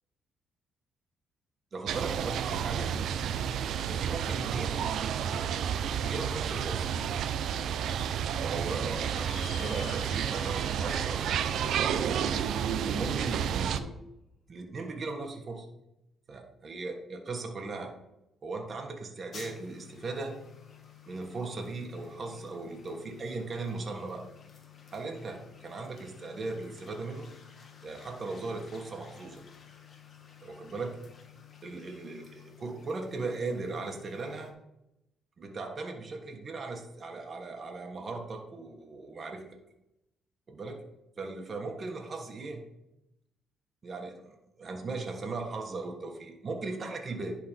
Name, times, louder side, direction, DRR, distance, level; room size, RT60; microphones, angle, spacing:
voice 1, 1.7-2.9 3.9-4.9 6.0-6.9 8.4-11.5 11.9-12.4 12.8-14.0 14.5-15.7 16.3-17.9 18.4-20.4 21.1-24.2 24.9-27.3 27.8-29.4 30.4-31.0 31.6-34.5 35.4-39.6 40.5-40.8 41.2-42.7 43.8-47.4, right 3 dB, 40° right, 2 dB, 1.4 m, -38 dB
sound 1, 1.9-13.8, right 8 dB, 75° right, 0.5 m, -31 dB
sound 2, 8.9-13.7, left 6 dB, 65° left, 1.0 m, -50 dB
sound 3, 19.3-34.5, left 8 dB, 45° left, 1.6 m, -53 dB
10.5 x 3.9 x 5.3 m, 0.87 s
cardioid pair, 90°, 0 cm